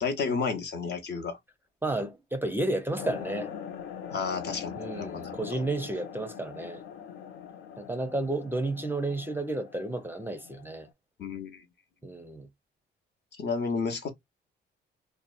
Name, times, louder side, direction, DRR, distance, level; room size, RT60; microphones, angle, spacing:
voice 1, 0.0-1.4 4.1-5.5 11.2-11.6 13.4-14.1, left 5 dB, 60° left, 0.8 m, -32 dB
voice 2, 1.8-3.5 4.8-6.8 7.8-10.9 12.0-12.5, right 2 dB, 10° right, 0.5 m, -32 dB
sound 1, 3.0-10.9, left 8 dB, 85° left, 0.5 m, -42 dB
2.7 x 2.0 x 2.3 m
cardioid pair, 90°, 20 cm